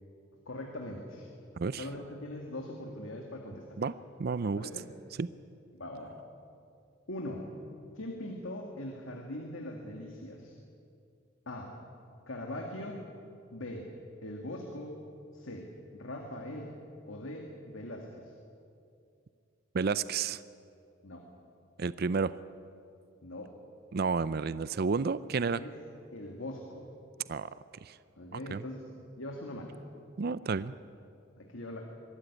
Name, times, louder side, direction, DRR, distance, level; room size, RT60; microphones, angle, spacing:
voice 1, 0.5-1.3 1.8-3.7 4.5-4.9 5.7-6.2 7.1-7.5 7.9-10.5 11.5-11.7 12.3-13.0 13.5-13.9 14.2-15.0 15.3-15.7 15.9-16.8 17.1-18.3 21.0-21.2 23.2-23.5 25.5-25.8 26.1-26.9 28.2-28.8 29.2-29.7 31.4-31.8, left 1 dB, 80° left, 1 dB, 2.2 m, -41 dB
voice 2, 1.6-1.9 3.8-3.9 4.2-4.7 5.2-5.3 19.7-20.4 21.8-22.4 23.9-25.6 27.3-27.5 27.8-28.0 28.3-28.6 30.2-30.7, right 5 dB, 50° right, 16 dB, 0.5 m, -31 dB
24.0 x 13.0 x 9.9 m, 2.5 s
head